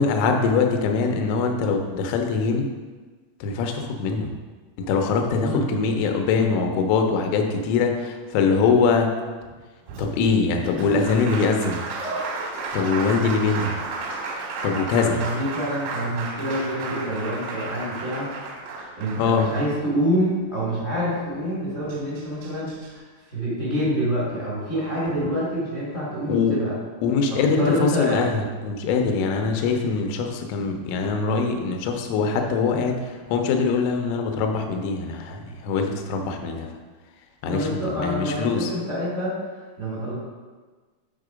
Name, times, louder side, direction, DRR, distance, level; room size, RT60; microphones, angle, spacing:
voice 1, 0.0-2.7 3.4-4.3 4.8-9.1 10.0-11.8 12.7-13.8 14.6-15.2 19.2-19.5 26.3-26.6 27.0-36.7 37.4-38.7, left 5 dB, 80° left, 3 dB, 3.2 m, -23 dB
Applause, 9.9-20.1 21.5-21.6 21.9-22.9, right 3 dB, 85° right, 3.9 m, -33 dB
voice 2, 15.1-18.3 18.9-23.0 23.3-26.7 27.3-28.3 37.5-39.3 39.8-40.1, equal, 50° left, -7 dB, 0.7 m, -26 dB
8.2 x 4.7 x 5.0 m, 1.4 s
omnidirectional pair, 5.7 m